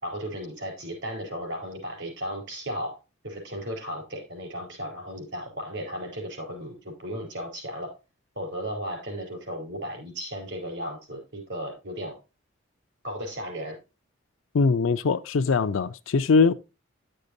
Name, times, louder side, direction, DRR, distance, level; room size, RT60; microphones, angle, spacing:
voice 1, 0.0-3.0 3.2-7.9 8.4-12.2 13.0-13.8, equal, 60° right, 4.6 m, -35 dB
voice 2, 14.5-16.5, left 4 dB, 80° left, 0.5 m, -21 dB
11.5 x 6.6 x 2.6 m
head